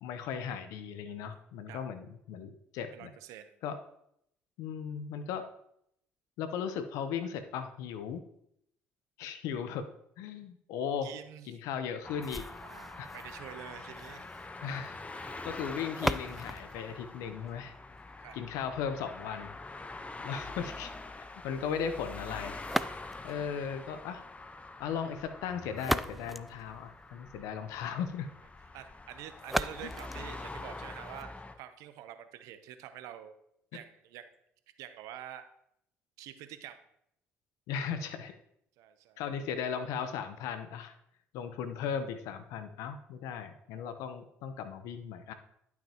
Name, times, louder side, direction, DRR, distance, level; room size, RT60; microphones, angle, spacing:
voice 1, 0.0-3.1 3.6-3.8 4.6-5.4 6.4-8.3 9.2-9.8 10.2-11.1 11.5-12.5 13.0-13.1 14.6-17.7 18.3-19.5 20.2-20.9 21.4-22.6 23.2-24.2 24.8-28.3 29.8-29.9 37.7-38.3 39.2-40.9 41.3-45.3, left 7 dB, 75° left, 9 dB, 0.8 m, -37 dB
voice 2, 2.9-3.6 11.0-11.5 12.6-14.2 15.1-15.5 18.2-18.4 28.7-31.3 31.6-33.4 33.7-34.3 34.8-35.4 36.2-36.8 38.8-39.2, right 11 dB, 75° right, 10 dB, 0.7 m, -47 dB
sound 1, 12.0-31.5, left 3 dB, 25° left, 1.0 m, -45 dB
sound 2, 12.2-18.2 22.6-23.4 25.5-27.4 29.4-31.4, equal, ahead, 0.4 m, -38 dB
11.0 x 5.9 x 2.9 m, 0.74 s
hypercardioid pair, 60°, 6 cm